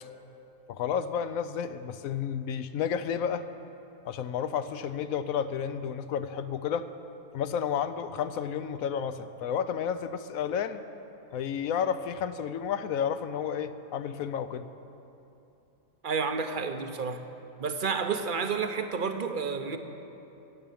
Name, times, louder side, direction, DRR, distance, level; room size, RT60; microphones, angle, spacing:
voice 1, 0.7-3.4 4.0-6.9 7.3-10.8 11.3-14.7, left 8 dB, 70° left, 12 dB, 1.0 m, -31 dB
voice 2, 16.0-17.2 17.6-19.8, right 5 dB, 45° right, 7 dB, 0.7 m, -30 dB
16.0 x 7.0 x 9.0 m, 2.9 s
omnidirectional pair, 1.6 m